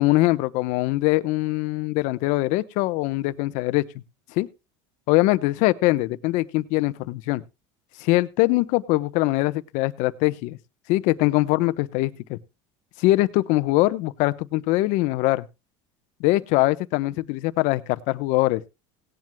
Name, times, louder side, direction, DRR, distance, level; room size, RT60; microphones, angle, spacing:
voice 1, 0.0-3.9 4.4-4.5 5.1-7.4 8.0-10.6 10.9-12.4 13.0-15.4 16.2-18.6, left 19 dB, 60° left, 14 dB, 0.9 m, -22 dB
18.0 x 10.5 x 2.2 m, 0.26 s
supercardioid pair, 140°, 14 cm